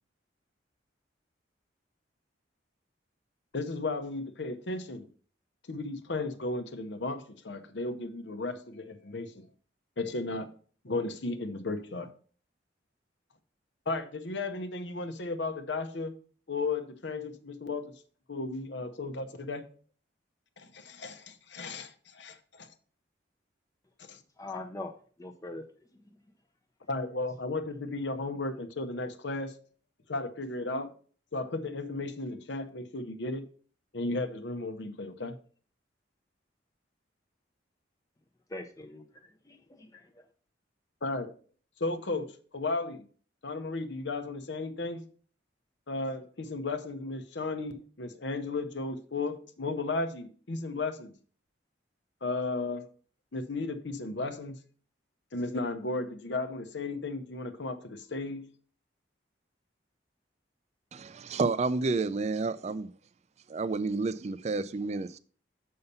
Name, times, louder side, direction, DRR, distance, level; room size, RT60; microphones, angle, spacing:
voice 1, 3.5-5.1 5.7-9.5 10.0-10.5 10.8-12.1 13.9-16.1 16.5-17.8 18.3-19.6 20.6-22.7 24.0-24.2 26.9-29.6 30.1-30.9 31.3-33.4 33.9-35.4 41.0-41.3 41.8-43.0 43.4-45.0 45.9-51.2 52.2-52.9 53.3-54.6 55.3-58.5, left 3 dB, 70° left, 0.8 m, -34 dB
voice 2, 24.4-24.9 25.2-25.6 38.5-40.3, left 2 dB, 20° left, 0.6 m, -42 dB
voice 3, 60.9-62.9 63.5-65.2, right 3 dB, 35° right, 0.4 m, -30 dB
6.8 x 5.6 x 5.4 m
head